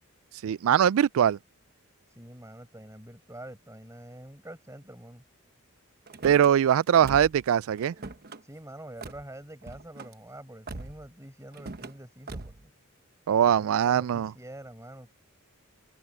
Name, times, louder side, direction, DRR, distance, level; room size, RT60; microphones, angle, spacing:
voice 1, 0.4-1.4 6.2-7.9 13.3-14.3, right 9 dB, 65° right, 0.3 m, -22 dB
voice 2, 2.1-5.2 8.4-12.7 13.4-15.1, right 1 dB, 15° right, 6.5 m, -46 dB
Car / Slam, 6.1-6.5 7.0-7.5 7.8-8.4 9.0-9.2 9.6-10.1 10.7-11.1 11.5-11.9 12.3-12.6, right 3 dB, 45° right, 1.0 m, -41 dB
head